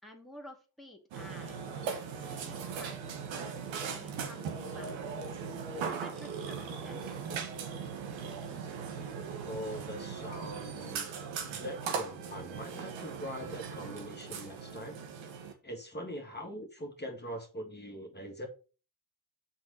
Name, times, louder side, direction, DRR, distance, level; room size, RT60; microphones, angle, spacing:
voice 1, 0.0-5.1 5.7-7.2, equal, ahead, 0 dB, 2.3 m, -52 dB
Burping eructation, 1.1-15.5, right 6 dB, 70° right, 1.7 m, -39 dB
voice 2, 9.4-11.1 11.4-15.0 15.6-18.5, equal, 20° left, 1 dB, 2.2 m, -42 dB
6.1 x 4.6 x 6.3 m, 0.34 s
hypercardioid pair, 50°, 48 cm